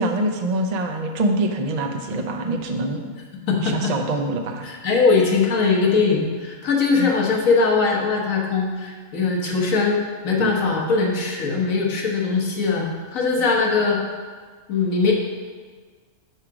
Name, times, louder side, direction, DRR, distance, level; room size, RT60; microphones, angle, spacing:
voice 1, 0.0-3.0 3.6-4.7 6.9-7.1 10.4-10.6, right 2 dB, 55° right, 3 dB, 0.4 m, -24 dB
voice 2, 3.5-3.9 4.6-12.9 13.1-14.0 14.7-15.1, left 4 dB, 70° left, -1 dB, 1.5 m, -21 dB
5.6 x 4.9 x 5.8 m, 1.5 s
omnidirectional pair, 1.4 m